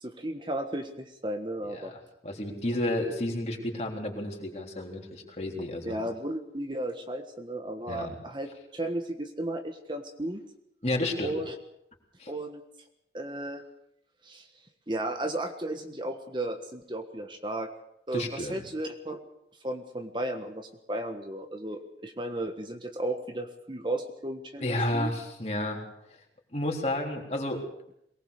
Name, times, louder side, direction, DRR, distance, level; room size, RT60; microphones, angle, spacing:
voice 1, 0.0-1.9 5.8-10.4 11.2-11.5 12.3-12.6 13.1-13.6 14.2-14.5 14.9-17.7 18.1-19.2 19.6-25.1, right 1 dB, 25° right, 5 dB, 1.4 m, -34 dB
voice 2, 1.6-6.0 7.9-8.1 10.8-11.4 12.2-12.3 18.1-18.6 24.6-26.2 26.5-27.6, left 1 dB, 35° left, 1 dB, 3.9 m, -31 dB
23.0 x 19.5 x 6.7 m, 0.77 s
head